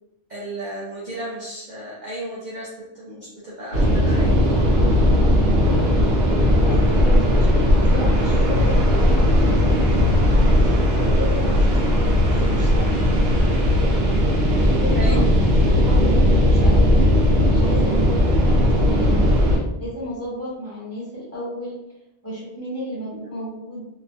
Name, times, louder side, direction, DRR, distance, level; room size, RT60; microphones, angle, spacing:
voice 1, 0.3-2.7 2.9-4.6 14.9-15.3 23.1-23.2, right 1 dB, 50° right, -7 dB, 0.6 m, -34 dB
sound 1, 3.7-19.6, left 1 dB, 70° right, 1.0 m, -17 dB
voice 2, 4.9-5.4 5.6-5.9 6.6-9.8 10.2-12.9 14.4-15.2 15.6-17.0 17.5-19.3 19.8-21.8 22.2-23.9, equal, 15° left, -8 dB, 1.1 m, -33 dB
2.9 x 2.2 x 2.7 m, 0.92 s
omnidirectional pair, 1.2 m